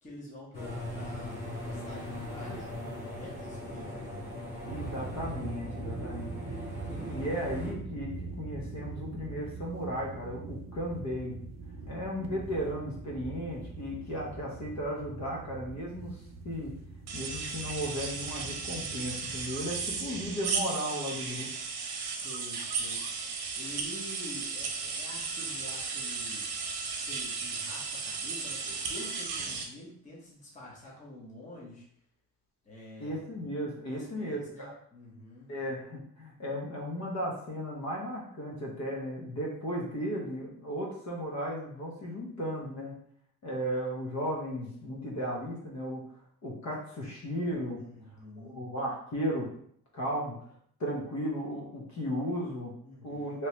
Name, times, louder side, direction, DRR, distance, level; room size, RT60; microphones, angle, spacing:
voice 1, 0.0-4.1 11.7-12.1 21.9-23.0 23.6-26.5 27.0-31.8 32.6-33.2 33.9-35.5 47.8-48.6 52.8-53.4, left 1 dB, 20° left, -5 dB, 0.9 m, -48 dB
sound 1, 0.5-7.7, left 1 dB, 80° left, 1.5 m, -40 dB
sound 2, 4.6-20.6, right 4 dB, 50° right, 0.4 m, -43 dB
voice 2, 4.7-6.3 6.5-11.4 11.9-16.7 17.1-21.5 33.0-34.7 35.5-42.9 43.4-46.1 46.4-47.8 48.4-49.5 49.9-50.3 50.8-52.7 53.0-53.5, equal, 50° left, -2 dB, 0.9 m, -35 dB
sound 3, 17.1-29.6, right 4 dB, 80° right, 0.8 m, -35 dB
3.1 x 3.1 x 2.9 m, 0.65 s
cardioid pair, 165°, 37 cm